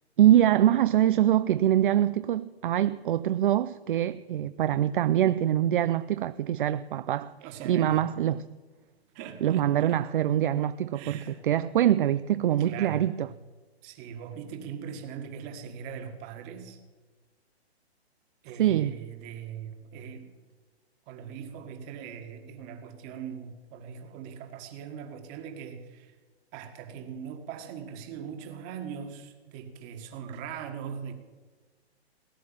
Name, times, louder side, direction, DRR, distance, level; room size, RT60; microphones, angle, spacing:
voice 1, 0.2-7.3 7.6-8.5 9.4-13.3 18.6-19.0, right 11 dB, 50° right, 0.5 m, -24 dB
voice 2, 7.4-8.0 9.1-10.0 10.9-11.4 12.6-13.1 13.8-16.8 18.4-20.3 21.1-26.1 26.5-31.1, right 7 dB, 25° right, 1.7 m, -41 dB
18.5 x 9.7 x 7.4 m
hypercardioid pair, 155°, 33 cm